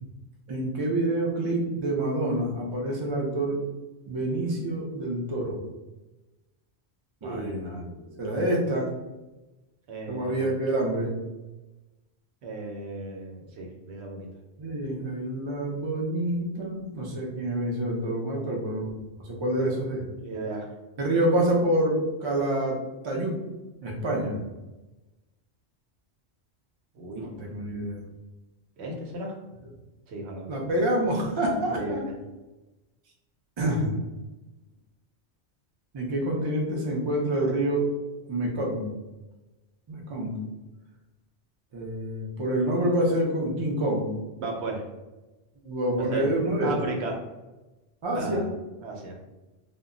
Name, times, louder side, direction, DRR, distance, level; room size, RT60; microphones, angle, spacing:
voice 1, 0.5-3.6 4.1-5.6 7.2-7.9 8.2-8.9 10.1-11.1 14.6-18.9 19.2-20.0 21.0-22.8 23.0-23.3 23.8-24.4 27.1-28.0 30.5-32.0 33.6-33.9 35.9-37.9 38.3-38.9 39.9-40.3 41.7-44.1 45.6-46.7 48.0-48.4, right 1 dB, 45° right, -1 dB, 0.4 m, -27 dB
voice 2, 7.2-8.4 9.9-10.5 12.4-14.3 20.2-20.7 26.9-27.5 28.8-29.3 30.1-30.5 31.7-32.1 44.4-44.8 46.0-46.3 46.6-47.2 48.1-48.5 48.8-49.2, right 2 dB, 75° right, 0 dB, 0.9 m, -35 dB
2.1 x 2.0 x 3.6 m, 1.1 s
omnidirectional pair, 1.1 m